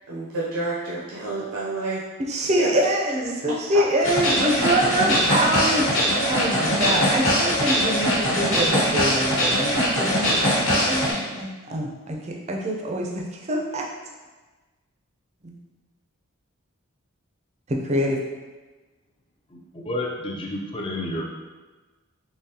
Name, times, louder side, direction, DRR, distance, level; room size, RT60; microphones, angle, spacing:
voice 1, 0.1-2.0 2.5-2.8, right 2 dB, 80° right, -6 dB, 0.6 m, -29 dB
voice 2, 2.2-13.8 15.4-15.5 17.7-18.2, right 1 dB, 30° right, 0 dB, 0.5 m, -25 dB
sound 1, 4.0-11.1, equal, 65° left, 1.2 m, -21 dB
voice 3, 19.9-21.3, left 1 dB, 25° left, -1 dB, 0.4 m, -29 dB
3.7 x 3.1 x 2.8 m, 1.2 s
head